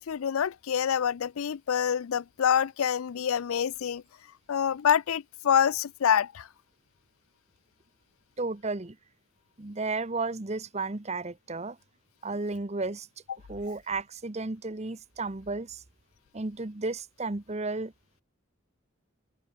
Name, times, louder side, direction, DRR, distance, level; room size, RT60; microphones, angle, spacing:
voice 1, 0.0-4.0 4.5-6.5, left 8 dB, 80° left, 0.4 m, -26 dB
voice 2, 8.4-9.0 9.6-11.8 12.2-13.1 13.5-15.8 16.3-17.9, right 3 dB, 30° right, 0.9 m, -33 dB
head